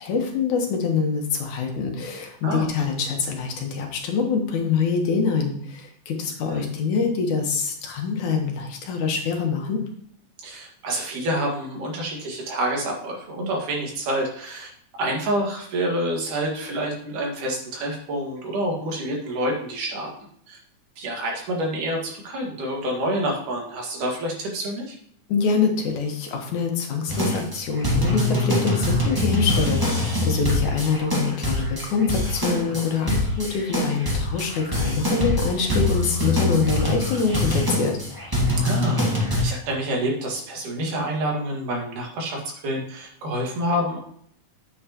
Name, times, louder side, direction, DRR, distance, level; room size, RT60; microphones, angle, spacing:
voice 1, 0.0-9.8 25.3-38.0, left 5 dB, 70° left, 2 dB, 2.7 m, -25 dB
voice 2, 10.4-14.7 15.0-20.1 20.5-20.6 21.0-25.0 32.7-32.8 38.6-39.0 39.4-44.0, right 1 dB, 85° right, -1 dB, 3.4 m, -27 dB
sound 1, 27.1-39.4, left 1 dB, 15° right, 0.8 m, -24 dB
9.2 x 8.0 x 3.0 m, 0.65 s
omnidirectional pair, 3.5 m